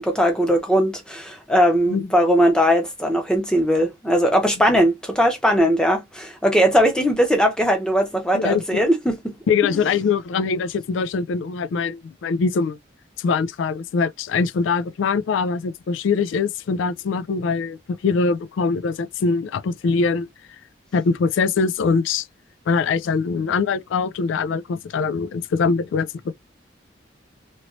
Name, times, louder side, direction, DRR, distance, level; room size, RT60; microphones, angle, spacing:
voice 1, 0.0-9.3 9.6-9.8, equal, 5° left, 0.7 m, -19 dB
voice 2, 8.3-8.8 9.5-12.8 13.2-20.3 20.9-22.3 22.7-26.3, left 5 dB, 85° left, 0.3 m, -23 dB
3.0 x 2.9 x 2.6 m
head